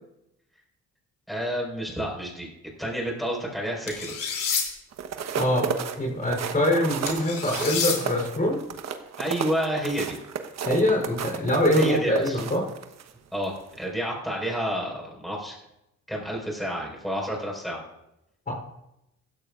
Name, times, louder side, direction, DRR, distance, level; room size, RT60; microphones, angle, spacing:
voice 1, 1.3-2.5 2.8-4.1 9.2-10.2 11.8-12.4 13.3-15.6 16.1-17.8, equal, ahead, -3 dB, 5.0 m, -29 dB
sound 1, 3.9-4.6 7.1-8.0, left 6 dB, 85° left, 3.1 m, -28 dB
sound 2, 4.9-13.1 13.6-13.8, right 7 dB, 60° right, 1.2 m, -32 dB
voice 2, 5.4-5.7 6.0-8.6 10.7-12.7 18.5-18.6, left 1 dB, 30° left, -1 dB, 3.8 m, -24 dB
16.5 x 13.5 x 2.5 m, 0.87 s
cardioid pair, 90°, 30 cm